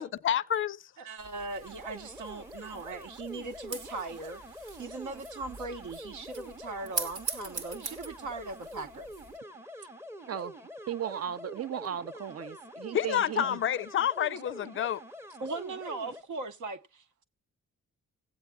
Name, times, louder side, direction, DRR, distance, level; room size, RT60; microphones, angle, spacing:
voice 1, 0.0-0.8 12.9-15.0, left 9 dB, 40° left, 0.4 m, -29 dB
voice 2, 1.0-4.4 4.8-9.1 15.4-17.0, right 3 dB, 70° right, 1.0 m, -39 dB
sound 1, 1.2-9.4, right 4 dB, 90° right, 1.8 m, -42 dB
sound 2, 1.6-16.2, equal, 10° right, 0.7 m, -46 dB
voice 3, 10.9-13.6, right 9 dB, 50° right, 0.6 m, -36 dB
19.5 x 8.1 x 2.2 m
cardioid pair, 75°, 31 cm